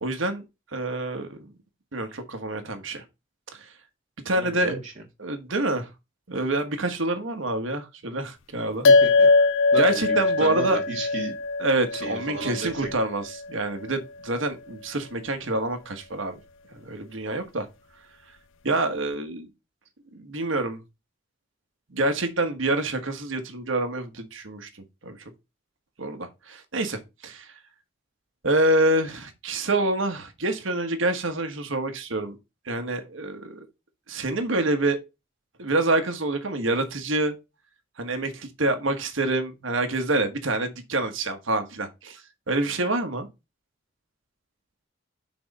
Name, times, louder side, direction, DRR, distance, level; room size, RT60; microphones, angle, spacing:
voice 1, 0.0-0.4 0.7-1.5 1.9-3.0 3.5-3.7 4.2-4.8 5.2-5.9 6.3-8.8 9.8-10.8 11.6-16.4 16.7-17.7 18.6-19.5 20.1-20.8 21.9-25.2 26.0-27.5 28.4-32.4 32.6-33.7 34.1-35.0 35.6-37.4 38.0-43.3, right 2 dB, 85° right, 1.3 m, -27 dB
voice 2, 4.3-4.9 8.8-9.3 9.7-11.3 11.9-12.8, right 2 dB, 40° right, 1.7 m, -33 dB
sound 1, 8.8-13.5, left 3 dB, 80° left, 0.4 m, -21 dB
6.2 x 4.2 x 5.2 m
head